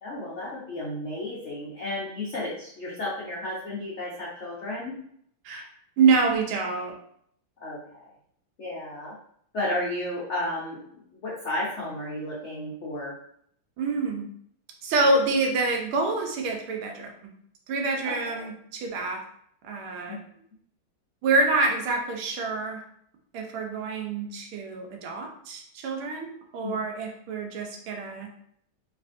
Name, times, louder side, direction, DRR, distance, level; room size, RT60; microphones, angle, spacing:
voice 1, 0.0-5.0 7.6-8.1 8.6-9.2 9.5-13.1 18.0-18.5 20.1-20.2 26.6-26.8, left 1 dB, 80° left, -6 dB, 0.6 m, -33 dB
voice 2, 6.0-6.9 13.8-14.3 14.8-17.1 17.7-19.2 19.6-20.2 21.2-22.8 23.3-28.3, right 3 dB, 85° right, 2 dB, 1.6 m, -26 dB
3.3 x 3.2 x 2.6 m, 0.66 s
omnidirectional pair, 2.3 m